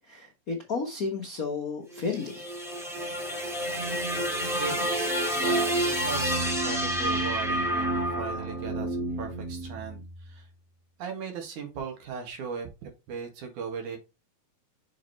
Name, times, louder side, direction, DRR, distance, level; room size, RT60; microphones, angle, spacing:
voice 1, 0.1-2.5, left 4 dB, 55° left, 0.9 m, -32 dB
sound 1, 1.9-10.2, right 1 dB, ahead, 1.1 m, -29 dB
voice 2, 4.3-10.5 11.0-14.0, right 6 dB, 85° right, 3.3 m, -38 dB
6.7 x 5.4 x 3.1 m
omnidirectional pair, 3.4 m